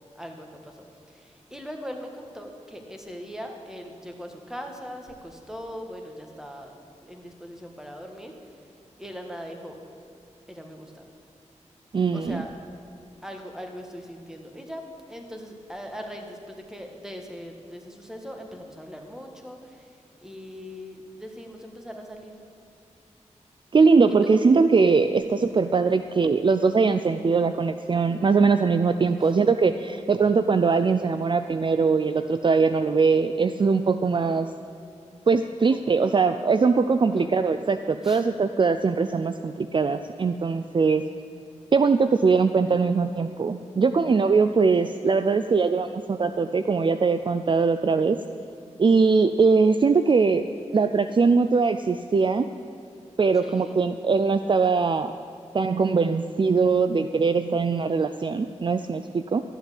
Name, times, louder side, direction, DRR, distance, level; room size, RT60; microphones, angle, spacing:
voice 1, 0.2-0.8 1.1-8.5 9.0-9.8 10.5-11.1 12.1-12.5 13.2-22.3 24.2-24.4 35.7-35.8 37.1-37.4 38.0-38.2 53.3-53.8, equal, 5° right, 3 dB, 1.8 m, -40 dB
voice 2, 11.9-12.4 23.7-34.5 35.3-41.1 41.7-48.2 48.8-50.4 50.7-52.5 53.2-55.1 55.5-59.4, right 4 dB, 40° right, 10 dB, 0.4 m, -21 dB
13.0 x 7.9 x 8.4 m, 2.4 s
cardioid pair, 60°, 13 cm